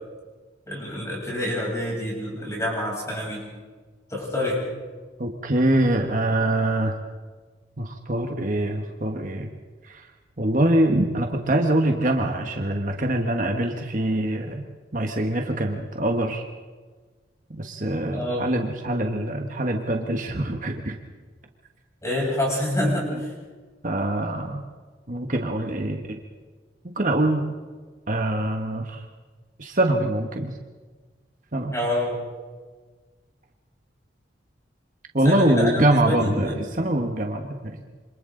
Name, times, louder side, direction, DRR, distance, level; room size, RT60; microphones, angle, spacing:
voice 1, 0.7-3.4 4.1-4.6 18.1-18.4 22.0-23.3 31.7-32.2 35.2-36.6, left 1 dB, 15° left, -3 dB, 7.8 m, -27 dB
voice 2, 5.2-7.0 7.8-9.5 9.9-10.0 10.4-14.6 14.9-16.4 17.5-21.0 22.8-23.2 23.8-24.6 25.1-26.2 27.0-27.5 28.1-29.0 29.6-30.5 31.5-31.7 35.1-37.8, right 1 dB, 45° right, 3 dB, 1.4 m, -24 dB
27.5 x 26.0 x 3.9 m, 1.4 s
head